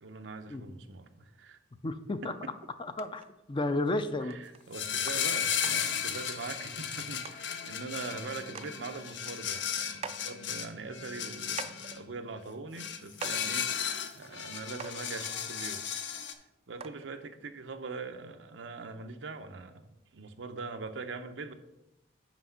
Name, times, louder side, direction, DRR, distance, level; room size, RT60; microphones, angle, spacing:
voice 1, 0.0-1.6 2.2-2.5 4.2-15.9 16.7-21.5, right 4 dB, 85° right, 8 dB, 0.7 m, -42 dB
voice 2, 1.8-2.3 2.8-4.4, left 2 dB, 25° left, 10 dB, 0.4 m, -32 dB
sound 1, 3.0-3.3 3.9-4.0 4.3-4.6 5.2-5.3 5.6-5.8 6.9-7.0 7.2-7.4 8.0-8.1 8.4-8.7 9.1-10.4 11.0-11.1 11.5-12.0 12.7-12.8 13.1-13.5 14.4-14.5 14.8-15.1 16.1-16.2 16.8-17.1 17.9-18.0, right 5 dB, 35° right, 0.3 m, -43 dB
sound 2, 4.7-12.0 12.8-16.3, left 8 dB, 70° left, 0.6 m, -35 dB
6.0 x 5.2 x 5.6 m, 0.92 s
head